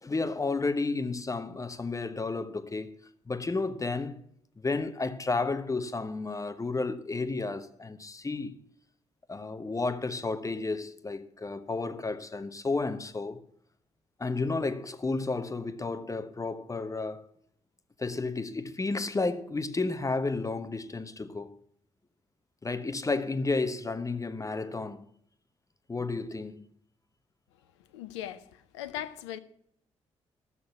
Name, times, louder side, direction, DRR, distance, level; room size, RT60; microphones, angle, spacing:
voice 1, 0.0-2.9 3.3-4.2 4.6-8.6 9.3-13.4 14.2-17.2 18.0-21.5 22.6-25.0 25.9-26.7, left 3 dB, 20° left, 1.1 m, -32 dB
voice 2, 27.8-29.4, left 11 dB, 75° left, 0.6 m, -39 dB
14.0 x 6.5 x 7.1 m
figure-of-eight pair, 40°, 15 cm